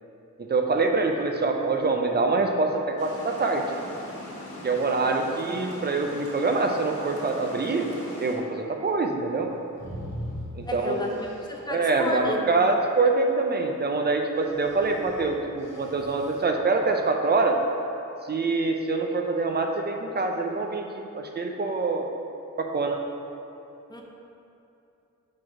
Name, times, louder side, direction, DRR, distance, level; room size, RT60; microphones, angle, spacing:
voice 1, 0.4-3.6 4.6-7.9 8.2-9.5 10.5-11.2 11.7-17.6 18.2-22.1 22.6-23.0, right 3 dB, 30° right, 3 dB, 0.5 m, -25 dB
Water, 3.0-8.4, left 1 dB, 45° left, 1.5 m, -40 dB
sound 1, 9.7-11.6 14.4-16.4, equal, 10° right, 1.1 m, -40 dB
voice 2, 10.6-12.6 23.9-24.0, left 1 dB, 15° left, 0 dB, 0.6 m, -32 dB
4.7 x 4.5 x 5.8 m, 2.7 s
wide cardioid pair, 150°, 32 cm